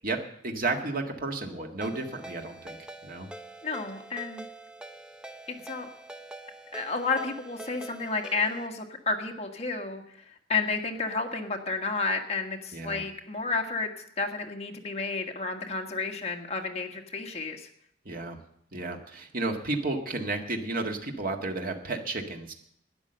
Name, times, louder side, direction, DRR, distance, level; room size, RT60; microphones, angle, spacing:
voice 1, 0.0-3.3 12.7-13.0 18.0-18.4 18.7-22.5, right 3 dB, 50° right, 3 dB, 1.8 m, -32 dB
Ringtone, 1.8-8.7, right 1 dB, 5° right, 0.6 m, -45 dB
voice 2, 3.6-4.4 5.5-5.9 6.7-13.9 14.2-17.7, left 4 dB, 35° left, 3 dB, 1.6 m, -31 dB
12.5 x 9.8 x 7.8 m, 0.71 s
head